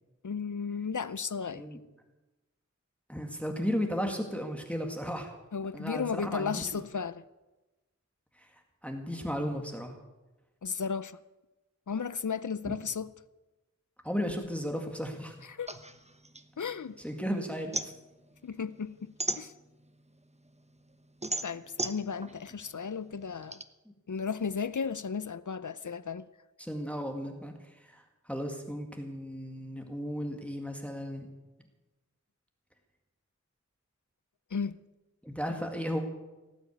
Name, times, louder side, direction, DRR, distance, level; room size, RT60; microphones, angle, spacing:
voice 1, 0.2-1.7 5.5-7.2 10.6-11.2 11.9-13.1 15.4-15.8 16.6-17.0 18.4-19.5 21.4-23.6 24.1-26.3 34.5-34.8, left 6 dB, 75° left, 0.6 m, -34 dB
voice 2, 3.1-5.3 5.7-6.7 8.4-10.0 12.7-12.8 14.0-15.4 17.0-17.9 26.6-31.3 35.2-36.0, equal, 5° left, 2.0 m, -35 dB
sound 1, 15.7-17.2 17.5-20.0 20.5-23.6, right 2 dB, 20° right, 1.0 m, -36 dB
18.5 x 9.0 x 8.4 m
wide cardioid pair, 40°, 30 cm